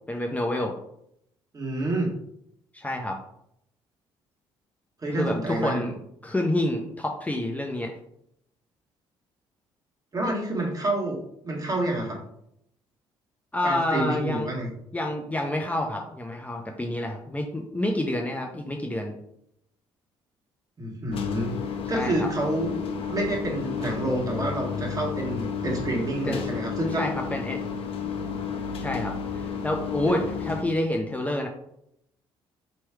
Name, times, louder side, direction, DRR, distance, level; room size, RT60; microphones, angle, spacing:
voice 1, 0.1-0.7 2.7-3.2 5.1-5.9 6.2-7.9 13.5-14.5 14.9-19.1 21.9-22.3 26.2-26.4 27.0-27.6 28.8-31.5, left 1 dB, 15° left, 1 dB, 0.6 m, -28 dB
voice 2, 1.5-2.1 5.0-5.8 10.1-12.2 13.6-14.7 20.8-21.5 21.9-22.8 23.1-27.1 30.0-30.1, right 1 dB, 35° right, -1 dB, 1.7 m, -28 dB
sound 1, 21.1-30.6, left 6 dB, 60° left, 0.6 m, -32 dB
3.1 x 3.0 x 4.6 m, 0.75 s
supercardioid pair, 65°, 11 cm